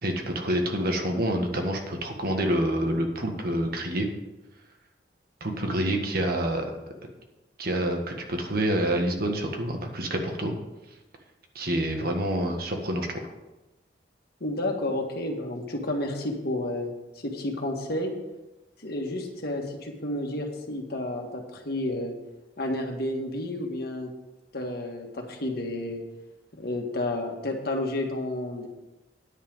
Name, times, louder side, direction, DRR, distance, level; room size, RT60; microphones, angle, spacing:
voice 1, 0.0-4.1 5.4-6.7 7.6-10.5 11.5-13.2, right 1 dB, 55° right, 3 dB, 1.6 m, -27 dB
voice 2, 14.4-18.1 18.8-22.1 22.6-24.1 24.5-26.0 26.5-28.7, left 1 dB, 60° left, 1 dB, 1.8 m, -31 dB
10.0 x 5.8 x 7.3 m, 1.0 s
head